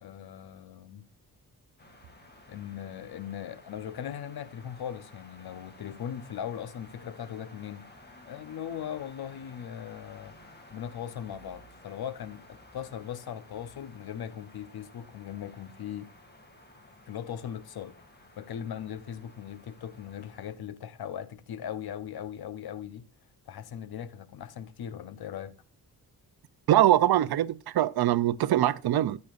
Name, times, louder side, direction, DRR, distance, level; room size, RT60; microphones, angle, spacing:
voice 1, 0.0-1.0 2.5-7.9 8.3-10.3 10.7-16.1 17.1-17.9 18.4-23.1 23.5-25.5, left 9 dB, 80° left, 1.0 m, -39 dB
sound 1, 1.8-20.5, left 1 dB, 25° left, 2.4 m, -54 dB
voice 2, 26.7-29.2, right 12 dB, 80° right, 0.7 m, -23 dB
14.0 x 9.5 x 2.6 m
wide cardioid pair, 160°, 37 cm